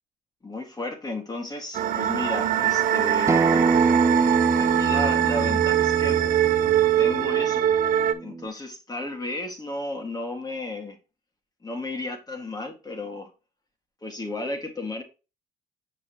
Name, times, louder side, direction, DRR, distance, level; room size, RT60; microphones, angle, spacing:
voice 1, 0.4-3.7 4.5-6.2 7.0-7.7 8.2-11.0 11.6-13.3 14.0-15.0, left 2 dB, 25° left, 2.0 m, -33 dB
sound 1, 1.7-8.1, right 11 dB, 65° right, 0.9 m, -22 dB
Acoustic guitar, 3.3-8.5, right 4 dB, 20° right, 0.4 m, -25 dB
7.4 x 5.6 x 3.0 m
supercardioid pair, 75°, 15 cm